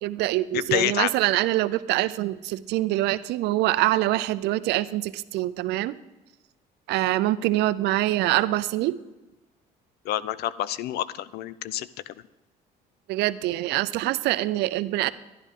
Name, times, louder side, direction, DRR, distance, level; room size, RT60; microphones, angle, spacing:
voice 1, 0.0-5.9 6.9-9.0 13.1-15.1, right 16 dB, 80° right, 16 dB, 0.5 m, -24 dB
voice 2, 0.5-1.1 10.0-12.1, left 13 dB, 75° left, 18 dB, 0.4 m, -28 dB
11.5 x 11.0 x 3.7 m, 1.1 s
cardioid pair, 110°, 17 cm